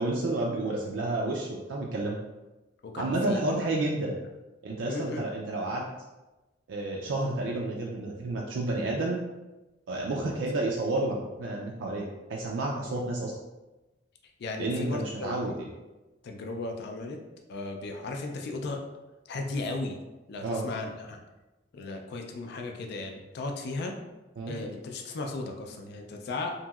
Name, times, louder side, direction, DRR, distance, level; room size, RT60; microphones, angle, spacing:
voice 1, 0.0-2.2 3.0-4.2 4.6-5.9 6.7-9.2 9.9-13.3 14.6-15.7 20.4-20.7 24.4-24.6, right 2 dB, 75° right, -2 dB, 0.4 m, -30 dB
voice 2, 2.8-3.4 3.8-3.9 4.8-5.2 10.0-10.4 12.9-13.0 14.4-15.7 16.2-17.2 17.5-18.8 19.3-20.0 20.3-21.2 21.7-23.9 24.5-26.5, left 3 dB, 60° left, 3 dB, 0.4 m, -36 dB
2.9 x 2.6 x 2.3 m, 1.1 s
head